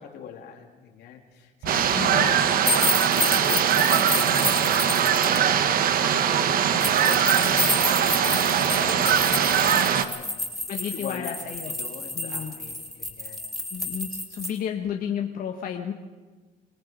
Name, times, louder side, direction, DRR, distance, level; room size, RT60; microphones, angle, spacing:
voice 1, 0.0-3.9 4.2-4.9 5.2-7.7 8.3-9.2 9.8-10.3 10.8-11.4 11.8-13.4, left 8 dB, 80° left, 2 dB, 3.1 m, -41 dB
Explosion, 1.6-3.2, right 3 dB, 85° right, 6.3 m, -45 dB
sound 1, 1.7-10.0, right 8 dB, 60° right, 1.2 m, -21 dB
voice 2, 1.9-2.4 6.7-6.8 10.7-11.7 12.1-12.5 13.7-15.9, left 8 dB, 55° left, 2 dB, 1.6 m, -32 dB
sound 2, 2.7-5.4 6.8-14.5, left 2 dB, ahead, 3.7 m, -29 dB
28.0 x 18.0 x 5.3 m, 1.3 s
cardioid pair, 110°, 17 cm